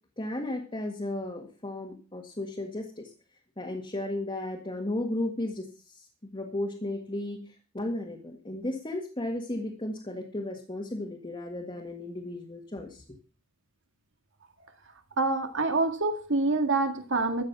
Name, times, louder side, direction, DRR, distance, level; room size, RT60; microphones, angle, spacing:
voice 1, 0.2-3.1 3.6-13.0, left 1 dB, 20° left, 0 dB, 1.8 m, -34 dB
voice 2, 15.2-17.4, right 3 dB, 60° right, 6 dB, 2.0 m, -26 dB
14.0 x 8.6 x 6.0 m, 0.39 s
head